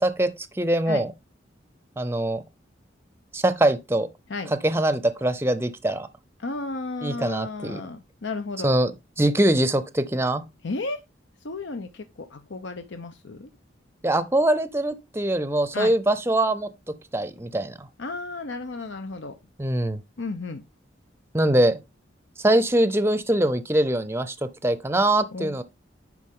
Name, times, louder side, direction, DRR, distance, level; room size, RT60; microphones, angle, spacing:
voice 1, 0.0-1.1 2.0-2.4 3.3-4.1 4.6-6.1 7.0-7.8 8.6-8.9 9.2-10.4 14.0-16.7 17.1-17.9 19.6-20.0 21.3-21.8 22.4-25.6, right 1 dB, 15° right, 0.6 m, -23 dB
voice 2, 6.4-8.8 10.6-11.0 11.4-13.5 15.7-15.9 18.0-19.3 20.2-20.6 25.3-25.6, left 3 dB, 80° left, 0.8 m, -33 dB
11.0 x 4.8 x 3.7 m
head